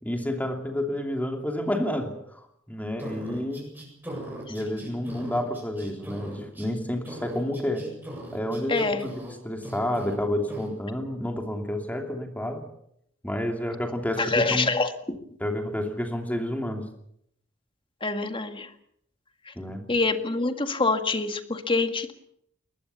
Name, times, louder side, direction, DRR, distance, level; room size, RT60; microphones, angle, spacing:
voice 1, 0.0-3.7 4.5-7.9 8.3-9.1 9.4-12.7 13.2-14.7 15.4-16.9 19.5-19.9, left 1 dB, 10° left, 4 dB, 2.8 m, -30 dB
sound 1, 3.0-6.7 7.0-9.4 9.6-10.2 10.5-10.7, right 1 dB, 10° right, 7.9 m, -39 dB
voice 2, 8.7-9.0 14.2-15.2 18.0-18.7 19.5-19.6 19.9-22.1, left 3 dB, 25° left, 7 dB, 1.9 m, -26 dB
21.5 x 20.5 x 7.0 m, 0.70 s
head